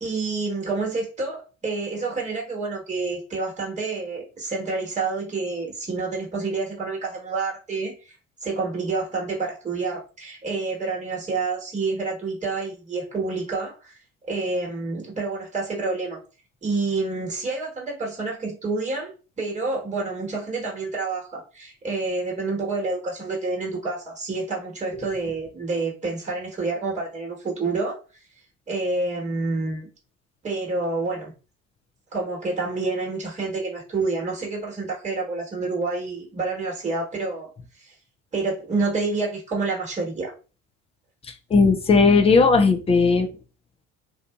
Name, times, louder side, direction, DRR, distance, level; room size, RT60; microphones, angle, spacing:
voice 1, 0.0-8.1 8.4-14.0 14.2-16.2 16.6-28.0 28.7-29.9 30.4-31.3 32.1-37.5 37.8-37.9 38.3-40.3, right 3 dB, 15° right, -2 dB, 1.3 m, -28 dB
voice 2, 41.5-43.3, left 4 dB, 15° left, 6 dB, 0.4 m, -16 dB
2.7 x 2.4 x 2.3 m, 0.34 s
hypercardioid pair, 65°, 41 cm